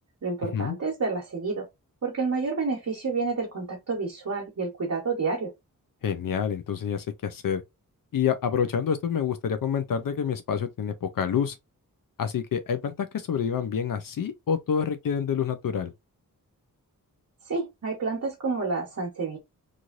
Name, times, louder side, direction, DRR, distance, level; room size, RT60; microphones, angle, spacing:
voice 1, 0.2-1.6 2.0-5.5 17.5-19.4, right 4 dB, 50° right, 1.0 m, -29 dB
voice 2, 6.0-7.6 8.1-11.6 12.2-15.9, left 7 dB, 70° left, 0.5 m, -27 dB
3.1 x 2.5 x 2.5 m
wide cardioid pair, 110°, 35 cm